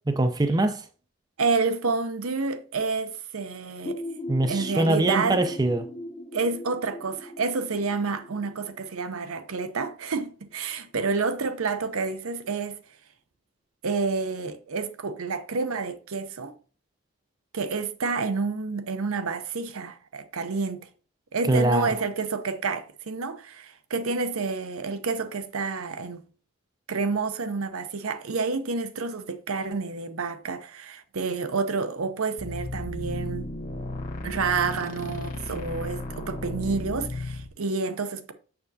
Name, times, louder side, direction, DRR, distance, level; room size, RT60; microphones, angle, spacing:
voice 1, 0.1-0.8 4.3-5.9 21.5-21.9, right 2 dB, 20° right, 0.4 m, -23 dB
voice 2, 1.4-4.0 4.5-5.4 6.3-12.8 13.8-16.5 17.5-20.9 21.3-26.2 26.9-33.5 34.2-38.3, right 4 dB, 75° right, 0.7 m, -29 dB
sound 1, 3.9-9.4, left 1 dB, 20° left, 0.7 m, -38 dB
sound 2, 32.4-37.5, left 2 dB, 35° left, 1.2 m, -34 dB
6.8 x 6.6 x 2.7 m
head